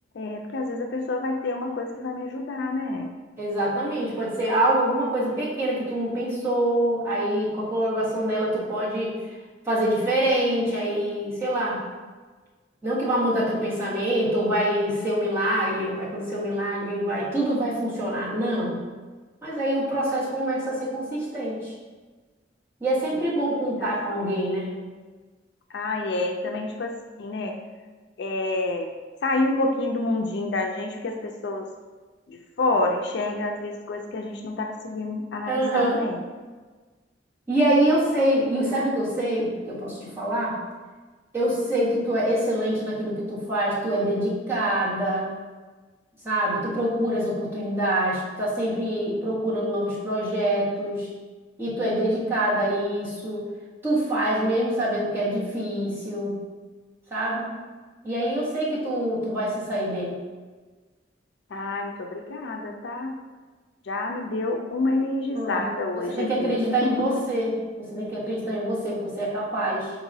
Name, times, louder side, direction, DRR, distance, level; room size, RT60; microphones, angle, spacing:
voice 1, 0.1-3.1 23.1-23.3 23.8-24.3 25.7-27.5 28.2-28.9 29.2-31.7 32.3-36.2 38.8-38.9 61.5-63.2 63.9-66.5 66.8-67.3, left 2 dB, 65° left, 3 dB, 0.4 m, -28 dB
voice 2, 3.4-9.1 9.7-11.8 12.8-18.8 19.4-21.7 22.8-24.7 35.5-36.0 37.5-40.6 41.3-45.3 46.2-51.1 51.6-53.5 53.8-56.4 57.1-57.5 58.0-60.2 65.3-65.8 66.1-69.9, right 1 dB, 15° right, -9 dB, 1.4 m, -25 dB
4.5 x 4.0 x 2.7 m, 1.3 s
head